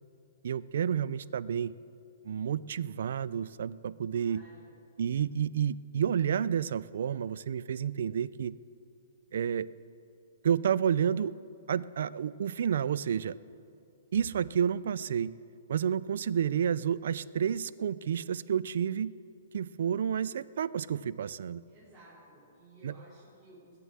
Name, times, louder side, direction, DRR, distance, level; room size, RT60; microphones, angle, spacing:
voice 1, 0.4-1.7 2.2-4.4 5.0-8.5 9.3-9.7 10.4-11.3 11.7-13.4 14.1-15.3 15.7-19.1 19.5-21.6 22.8-23.0, right 8 dB, 65° right, 19 dB, 0.4 m, -30 dB
voice 2, 4.1-4.7 21.7-23.7, right 1 dB, 10° right, -12 dB, 4.0 m, -56 dB
20.5 x 6.8 x 7.7 m, 2.7 s
hypercardioid pair, 160°, 0 cm